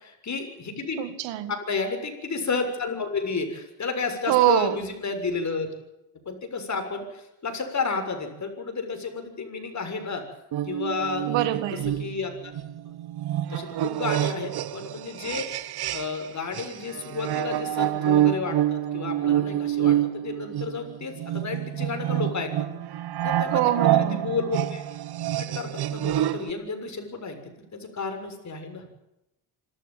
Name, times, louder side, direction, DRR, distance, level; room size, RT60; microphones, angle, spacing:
voice 1, 0.0-1.1 1.5-5.7 6.3-10.2 10.6-11.3 11.7-12.5 13.5-22.7 23.2-24.8 25.4-28.8, left 4 dB, 40° left, 6.9 m, -32 dB
voice 2, 1.0-1.5 4.3-4.8 11.3-11.9 23.5-24.3, right 14 dB, 80° right, 1.9 m, -24 dB
sound 1, 10.5-16.3 16.5-26.5, right 12 dB, 60° right, 1.2 m, -27 dB
26.5 x 14.5 x 9.1 m
supercardioid pair, 75°, 43 cm